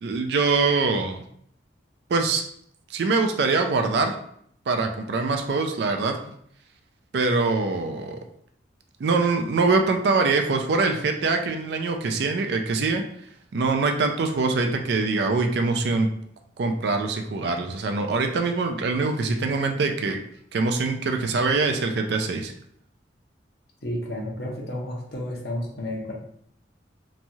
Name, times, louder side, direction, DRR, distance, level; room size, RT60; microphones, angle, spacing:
voice 1, 0.0-1.2 2.1-2.4 2.9-4.1 4.7-6.2 7.1-8.2 9.0-13.0 13.5-16.1 16.6-20.2 20.5-22.5, right 3 dB, 60° right, 5 dB, 0.3 m, -23 dB
voice 2, 23.8-26.1, left 1 dB, 60° left, -1 dB, 0.7 m, -31 dB
3.0 x 2.3 x 2.6 m, 0.67 s
head